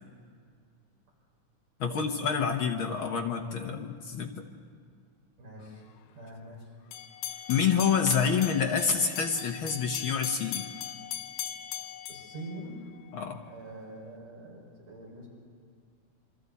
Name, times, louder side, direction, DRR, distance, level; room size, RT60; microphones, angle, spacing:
voice 1, 1.8-4.4 7.5-10.7 13.1-13.4, left 6 dB, 65° left, 3 dB, 1.3 m, -27 dB
voice 2, 5.4-5.8 6.1-6.7 12.1-12.8 13.4-15.3, right 1 dB, 85° right, -4 dB, 7.3 m, -44 dB
sound 1, 6.9-13.1, left 11 dB, 90° left, 2.3 m, -40 dB
27.5 x 24.5 x 4.2 m, 2.1 s
omnidirectional pair, 3.6 m